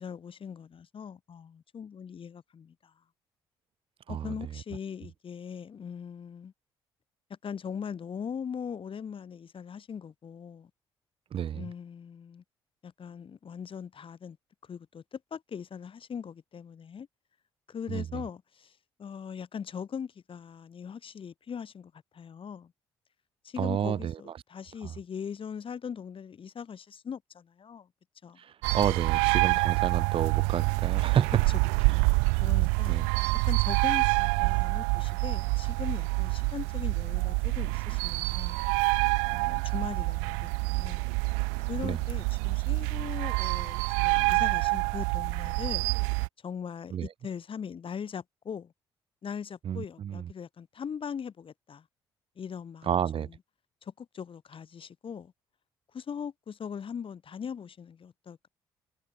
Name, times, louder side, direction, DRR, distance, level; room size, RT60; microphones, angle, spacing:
voice 1, 0.0-2.9 4.1-6.5 7.4-10.7 11.5-12.4 12.8-14.4 14.7-17.1 17.7-22.7 23.4-27.9 28.2-28.4 31.9-33.0 33.4-38.7 39.3-41.1 41.6-45.9 46.4-48.7 49.2-51.9 52.4-53.3 53.8-55.3 55.9-58.5, left 7 dB, 45° left, 5.1 m, -40 dB
voice 2, 4.1-4.5 11.3-11.7 17.9-18.2 23.6-24.4 24.8-24.9 28.4-31.4 32.9-33.1 41.8-42.0 46.9-47.1 49.6-50.3 52.8-53.3, right 9 dB, 45° right, 0.7 m, -30 dB
sound 1, 28.6-46.3, right 39 dB, 70° right, 0.4 m, -27 dB
figure-of-eight pair, 45°, 13 cm